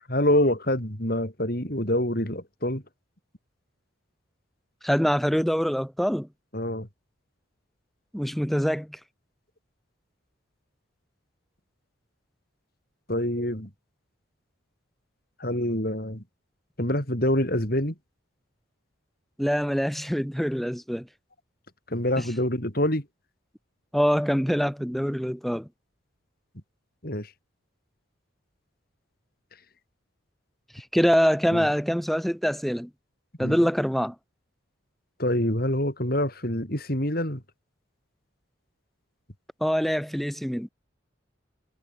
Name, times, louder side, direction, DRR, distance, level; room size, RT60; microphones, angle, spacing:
voice 1, 0.1-2.8 6.5-6.9 13.1-13.7 15.4-16.2 16.8-17.9 21.9-23.1 27.0-27.3 31.5-31.7 33.4-33.6 35.2-37.4, left 1 dB, 45° left, 5.7 m, -26 dB
voice 2, 4.8-6.3 8.1-9.0 19.4-21.1 22.2-22.3 23.9-25.7 30.7-32.9 33.4-34.2 39.6-40.7, equal, ahead, 3.9 m, -24 dB
head